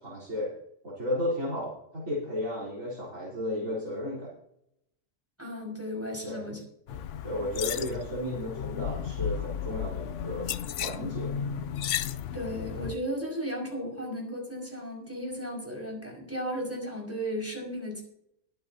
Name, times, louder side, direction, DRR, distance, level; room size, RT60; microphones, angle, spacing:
voice 1, 0.0-0.5 0.8-4.3 6.2-6.5 7.2-10.5 10.8-11.4, left 1 dB, 75° right, -6 dB, 4.2 m, -33 dB
voice 2, 5.4-7.0 12.3-18.0, equal, 10° right, -1 dB, 5.3 m, -35 dB
sound 1, 6.9-13.0, left 8 dB, 70° left, 0.9 m, -34 dB
22.0 x 9.4 x 2.8 m, 0.75 s
omnidirectional pair, 1.4 m